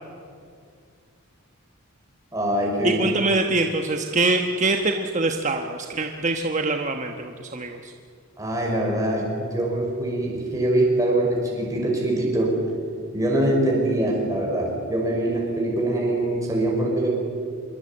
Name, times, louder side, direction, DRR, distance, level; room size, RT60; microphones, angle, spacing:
voice 1, 2.3-3.1 8.4-12.7 13.1-17.1, right 1 dB, 15° right, -2 dB, 5.4 m, -23 dB
voice 2, 2.8-7.9, right 2 dB, 35° right, 4 dB, 1.2 m, -24 dB
25.5 x 22.0 x 8.7 m, 2.2 s
head